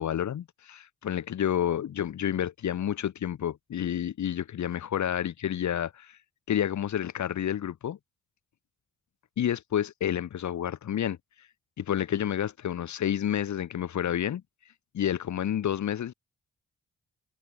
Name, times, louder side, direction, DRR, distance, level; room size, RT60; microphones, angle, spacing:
voice 1, 0.0-6.2 6.5-8.0 9.4-11.2 11.8-14.4 14.9-16.1, left 10 dB, 75° left, 3.4 m, -29 dB
supercardioid pair, 50°, 29 cm